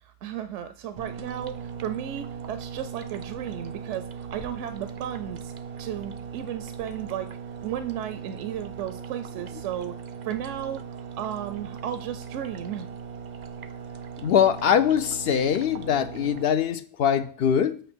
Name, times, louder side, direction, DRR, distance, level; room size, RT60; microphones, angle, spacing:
voice 1, 0.0-5.5 5.8-7.3 7.6-9.9 10.2-12.9, right 10 dB, 75° right, 0.9 m, -34 dB
sound 1, 1.0-16.4, right 6 dB, 55° right, 0.5 m, -39 dB
voice 2, 14.2-17.8, left 8 dB, 65° left, 0.7 m, -22 dB
7.8 x 2.9 x 6.1 m
omnidirectional pair, 1.3 m